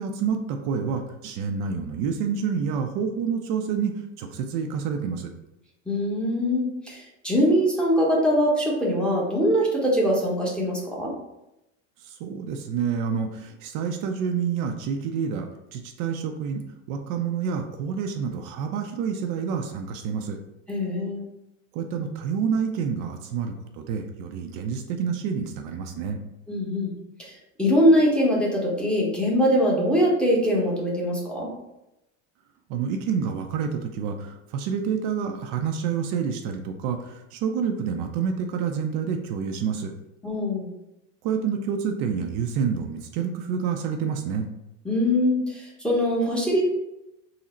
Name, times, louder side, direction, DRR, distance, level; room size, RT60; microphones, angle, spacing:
voice 1, 0.0-5.3 12.0-16.6 16.9-20.4 21.7-26.2 32.7-39.9 41.2-44.5, right 6 dB, 60° right, 4 dB, 0.5 m, -28 dB
voice 2, 5.9-11.1 20.7-21.2 26.5-26.9 27.2-27.3 27.6-31.5 40.2-40.7 44.8-46.6, equal, 5° left, -4 dB, 0.8 m, -22 dB
3.8 x 2.0 x 4.2 m, 0.90 s
supercardioid pair, 125°, 36 cm